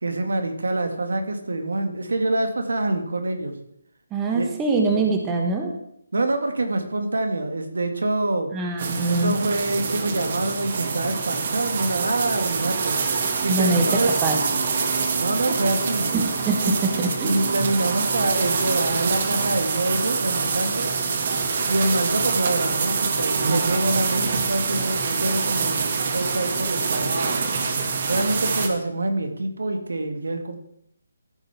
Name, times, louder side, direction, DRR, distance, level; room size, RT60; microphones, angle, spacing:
voice 1, 0.0-3.6 4.3-4.5 4.9-5.0 6.1-8.5 9.1-13.0 13.4-14.1 15.2-16.1 16.6-16.7 17.2-20.9 21.7-27.7 28.1-30.6, right 2 dB, 80° right, 6 dB, 2.1 m, -26 dB
voice 2, 4.1-5.7 8.5-9.3 13.5-13.8 14.2-14.4 16.1-16.6 17.0-17.4, right 3 dB, 15° right, 2 dB, 1.3 m, -23 dB
sound 1, 8.8-28.7, right 5 dB, 45° right, 1.7 m, -25 dB
14.0 x 5.2 x 5.9 m, 0.72 s
hypercardioid pair, 160°, 0 cm